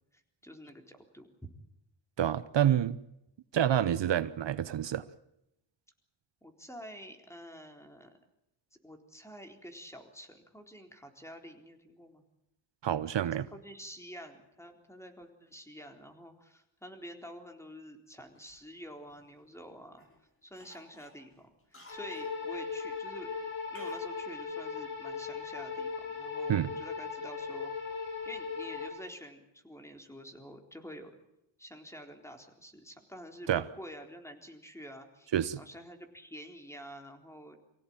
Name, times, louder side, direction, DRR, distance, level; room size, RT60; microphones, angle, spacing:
voice 1, 0.1-1.3 6.4-8.1 8.8-12.2 13.5-20.1 20.4-21.3 21.9-23.3 23.7-27.7 28.3-31.1 31.6-37.6, equal, 5° left, 3.9 m, -48 dB
voice 2, 2.2-3.0 3.5-5.0 12.8-13.5 26.5-26.7 33.5-33.6 35.3-35.6, right 10 dB, 70° right, 0.9 m, -28 dB
Cough, 18.4-19.6 20.0-20.2 20.6-22.4 23.7-24.1 24.4-24.5, left 1 dB, 30° left, 5.3 m, -56 dB
sound 1, 21.9-28.9, left 5 dB, 90° left, 8.0 m, -38 dB
25.0 x 17.0 x 8.7 m
cardioid pair, 85°, 46 cm